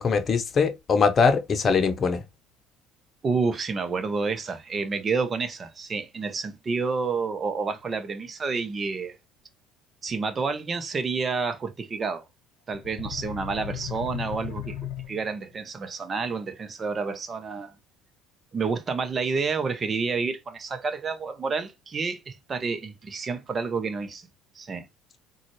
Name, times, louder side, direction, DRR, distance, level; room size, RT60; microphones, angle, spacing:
voice 1, 0.0-2.2, left 5 dB, 40° left, 0.8 m, -22 dB
voice 2, 3.2-9.2 10.0-12.3 12.7-14.8 15.1-17.7 18.5-24.3 24.5-24.9, right 4 dB, 35° right, 0.8 m, -29 dB
sound 1, 12.7-15.5, left 8 dB, 75° left, 0.7 m, -36 dB
3.8 x 2.4 x 3.0 m
hypercardioid pair, 70°, 0 cm